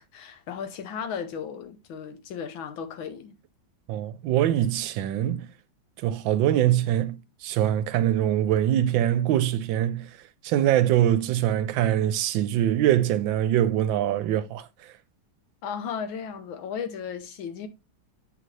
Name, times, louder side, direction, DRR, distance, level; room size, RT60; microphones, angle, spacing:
voice 1, 0.0-3.4 15.6-17.7, left 7 dB, 90° left, 1.7 m, -35 dB
voice 2, 3.9-5.5 6.0-10.1 10.4-14.7, right 11 dB, 85° right, 1.3 m, -23 dB
7.9 x 4.0 x 3.2 m
omnidirectional pair, 2.1 m